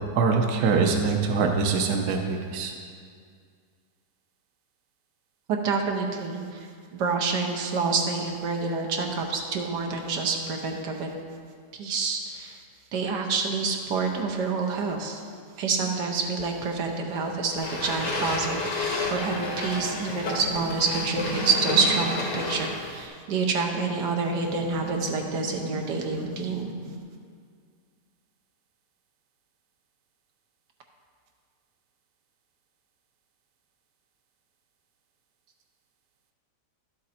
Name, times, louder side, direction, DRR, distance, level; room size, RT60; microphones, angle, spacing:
voice 1, 0.2-2.7, right 4 dB, 70° right, 3 dB, 1.3 m, -23 dB
voice 2, 5.5-6.6 6.9-11.1 11.7-12.6 12.9-15.2 15.6-26.7, right 4 dB, 85° right, 2 dB, 1.5 m, -27 dB
sound 1, 17.6-23.1, left 2 dB, 80° left, 2.0 m, -31 dB
sound 2, 19.1-22.4 24.2-27.0, equal, 65° left, 1.3 m, -38 dB
11.5 x 7.6 x 4.3 m, 2.1 s
omnidirectional pair, 1.8 m